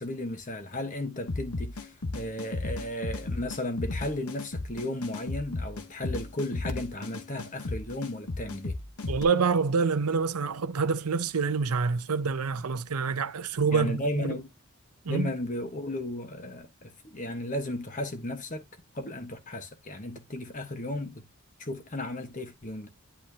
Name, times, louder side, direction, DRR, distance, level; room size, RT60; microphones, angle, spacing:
voice 1, 0.0-8.8 13.7-14.5 15.1-18.6 18.9-21.2 21.6-22.9, left 1 dB, 35° left, 1.3 m, -35 dB
sound 1, 1.3-9.2, left 2 dB, 85° left, 1.2 m, -34 dB
voice 2, 9.1-14.4 15.0-15.3, right 5 dB, 90° right, 0.7 m, -27 dB
10.5 x 4.4 x 2.8 m
head